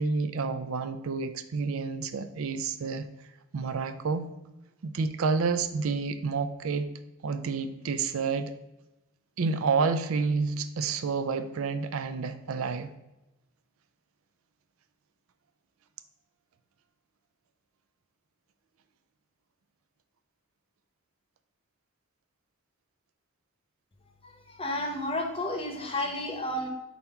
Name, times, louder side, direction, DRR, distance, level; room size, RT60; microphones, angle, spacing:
voice 1, 0.0-3.1 3.5-4.3 4.8-6.9 7.2-8.5 9.4-12.9, right 4 dB, 75° right, 10 dB, 0.4 m, -29 dB
voice 2, 24.2-26.7, left 1 dB, 25° left, 3 dB, 0.8 m, -32 dB
4.4 x 4.0 x 5.5 m, 0.96 s
head